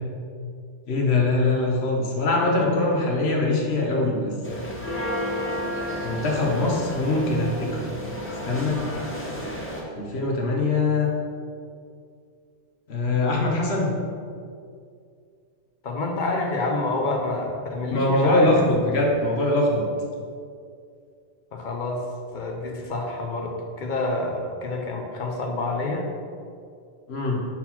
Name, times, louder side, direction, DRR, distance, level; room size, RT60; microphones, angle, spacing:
voice 1, 0.9-4.7 6.0-7.8 8.4-8.8 10.0-11.1 12.9-13.9 17.9-19.9 27.1-27.4, left 2 dB, 65° left, -1 dB, 1.2 m, -23 dB
sound 1, 4.4-9.8, equal, 15° left, 0.7 m, -31 dB
voice 2, 15.8-18.7 21.5-22.1 22.3-26.1, left 2 dB, 50° left, 2 dB, 0.7 m, -28 dB
4.2 x 4.1 x 5.6 m, 2.3 s
omnidirectional pair, 1.2 m